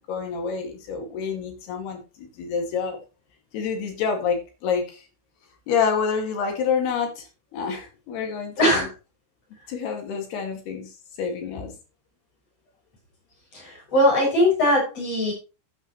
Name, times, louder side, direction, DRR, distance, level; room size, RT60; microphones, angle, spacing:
voice 1, 0.1-3.0 3.5-5.0 5.7-7.2 7.5-8.9 9.7-10.9 11.2-11.7, left 6 dB, 60° left, 3 dB, 4.0 m, -27 dB
voice 2, 8.6-8.9 13.5-15.3, left 1 dB, 30° left, -2 dB, 7.3 m, -20 dB
14.5 x 8.9 x 3.1 m, 0.32 s
omnidirectional pair, 5.5 m